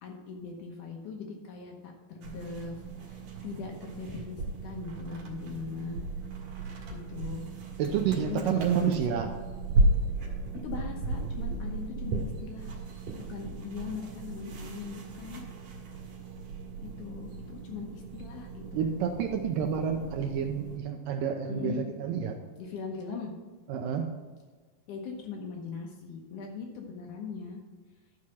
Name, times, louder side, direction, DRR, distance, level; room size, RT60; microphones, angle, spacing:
voice 1, 0.0-6.0 6.9-7.5 8.2-9.2 10.6-12.7 13.3-15.4 16.8-18.9 21.5-21.8 22.6-23.3 24.9-27.6, left 5 dB, 70° left, 1 dB, 2.1 m, -40 dB
sound 1, 2.2-20.8, right 2 dB, 65° right, 3.1 m, -35 dB
voice 2, 7.8-9.3 18.7-22.4 23.7-24.1, right 7 dB, 80° right, 4 dB, 2.1 m, -29 dB
12.0 x 4.8 x 5.7 m, 1.4 s
omnidirectional pair, 4.4 m